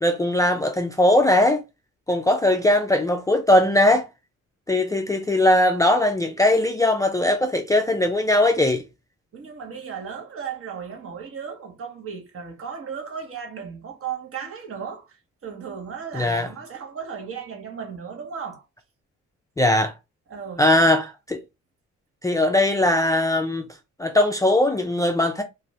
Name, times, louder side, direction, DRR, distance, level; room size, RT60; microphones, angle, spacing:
voice 1, 0.0-1.6 2.1-4.1 4.7-8.8 16.1-16.5 19.6-19.9 20.6-21.4 22.2-23.7 24.0-25.4, left 1 dB, 10° left, 0.4 m, -20 dB
voice 2, 9.3-18.6 20.3-20.9, right 7 dB, 45° right, 1.2 m, -35 dB
2.6 x 2.5 x 3.1 m
cardioid pair, 90°, 30 cm